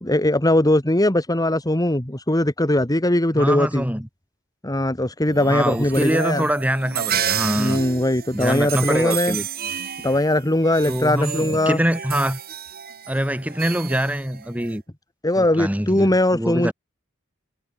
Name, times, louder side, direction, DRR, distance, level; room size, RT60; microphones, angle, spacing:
voice 1, 0.0-3.9 4.6-6.4 7.6-9.4 10.0-11.8 15.2-16.7, left 1 dB, 20° left, 2.2 m, -20 dB
voice 2, 3.3-4.1 5.5-7.8 8.3-9.5 10.9-12.4 13.1-14.8 15.4-16.7, equal, 5° right, 3.3 m, -24 dB
sound 1, 5.3-14.8, right 8 dB, 45° right, 2.9 m, -31 dB
head